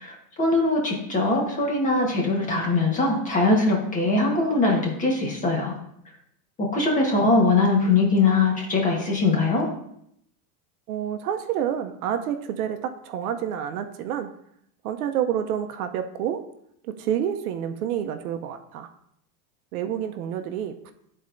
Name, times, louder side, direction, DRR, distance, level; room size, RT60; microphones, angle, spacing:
voice 1, 0.0-5.7 6.7-9.7, left 3 dB, 15° left, -1 dB, 1.2 m, -22 dB
voice 2, 10.9-14.3 14.8-16.4 16.8-18.9 19.7-20.9, right 9 dB, 65° right, 8 dB, 0.7 m, -29 dB
12.5 x 4.3 x 2.6 m, 0.73 s
supercardioid pair, 155°, 47 cm